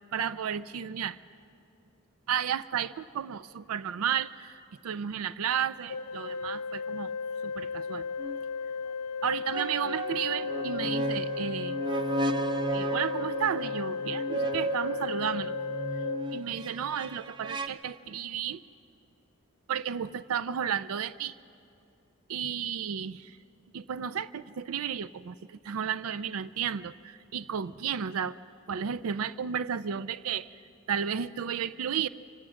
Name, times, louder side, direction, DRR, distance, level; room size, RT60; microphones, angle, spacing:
voice 1, 0.1-1.2 2.3-7.1 7.4-8.0 9.2-11.8 12.7-15.6 16.3-18.6 19.7-21.4 22.3-23.4 23.7-28.4 28.7-30.6 30.9-32.1, right 8 dB, 75° right, 16 dB, 0.4 m, -33 dB
Organ, 5.9-16.9, left 5 dB, 85° left, 0.6 m, -35 dB
sound 1, 8.2-8.4 9.5-17.7, right 2 dB, 20° right, 0.5 m, -34 dB
25.5 x 17.5 x 6.3 m, 2.6 s
head